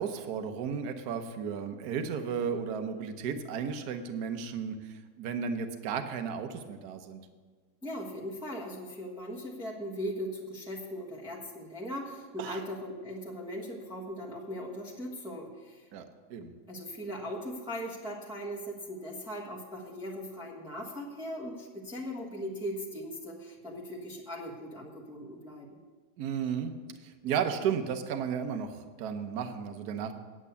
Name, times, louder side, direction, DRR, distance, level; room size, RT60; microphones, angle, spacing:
voice 1, 0.0-7.2 12.4-12.6 15.9-16.5 26.2-26.7 27.0-30.1, right 7 dB, 60° right, 6 dB, 1.3 m, -34 dB
voice 2, 7.8-15.9 16.7-25.8, equal, 5° right, -5 dB, 1.1 m, -39 dB
9.5 x 8.7 x 6.8 m, 1.5 s
omnidirectional pair, 2.0 m